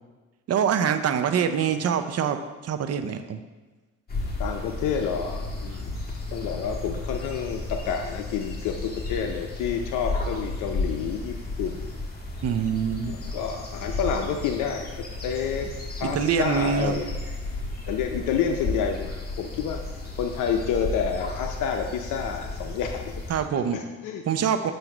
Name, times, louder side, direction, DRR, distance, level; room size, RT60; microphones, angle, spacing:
voice 1, 0.5-2.4 2.6-3.4 12.4-13.1 16.0-17.0 23.3-23.8 24.3-24.7, right 7 dB, 55° right, 8 dB, 0.6 m, -24 dB
sound 1, 4.1-23.4, left 2 dB, 30° left, 1.4 m, -33 dB
voice 2, 4.4-6.0 6.3-11.8 13.1-15.0 15.2-15.7 16.0-17.1 17.9-19.1 19.4-19.8 20.2-23.0 23.3-23.4 23.7-24.2, left 7 dB, 85° left, 4 dB, 0.6 m, -29 dB
7.7 x 2.6 x 5.9 m, 1.2 s
cardioid pair, 90°, 30 cm